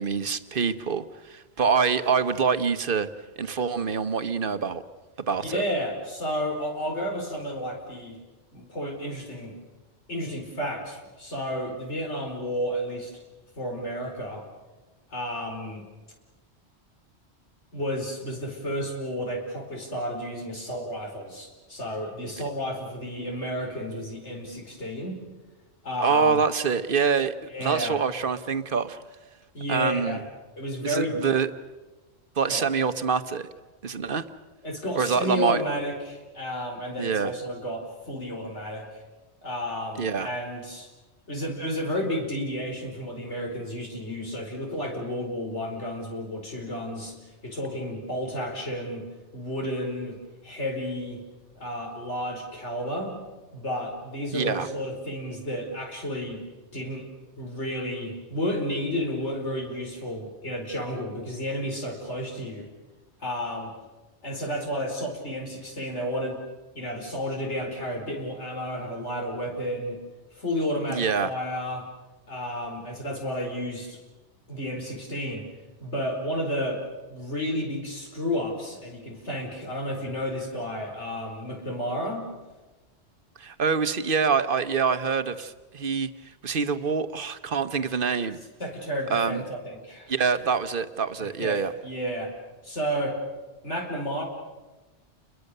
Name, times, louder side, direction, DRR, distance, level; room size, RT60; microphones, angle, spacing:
voice 1, 0.0-3.1 3.4-4.8 5.3-5.6 26.0-29.0 29.7-30.2 30.8-31.5 32.4-33.5 33.8-34.2 35.0-35.6 37.0-37.3 40.0-40.3 54.3-54.7 70.9-71.3 83.4-86.1 86.4-88.4 89.1-89.4 90.1-91.7, right 5 dB, 50° right, 11 dB, 1.2 m, -25 dB
voice 2, 5.4-8.2 8.5-9.5 10.1-13.1 13.6-14.4 15.1-15.8 17.7-25.2 25.8-26.5 27.5-28.0 29.5-30.3 30.6-31.2 32.5-32.7 34.6-39.0 39.4-40.9 41.3-47.2 47.4-49.0 49.3-50.2 50.4-51.2 51.6-53.2 53.5-56.4 56.7-57.1 57.4-62.7 63.2-63.7 64.2-66.4 66.7-70.0 70.3-71.9 72.3-74.0 74.5-75.5 75.8-76.8 77.1-82.3 88.6-90.1 91.2-92.3 92.6-93.2 93.6-94.2, equal, 85° left, 1 dB, 5.0 m, -32 dB
29.5 x 22.0 x 6.7 m, 1.2 s
omnidirectional pair, 1.2 m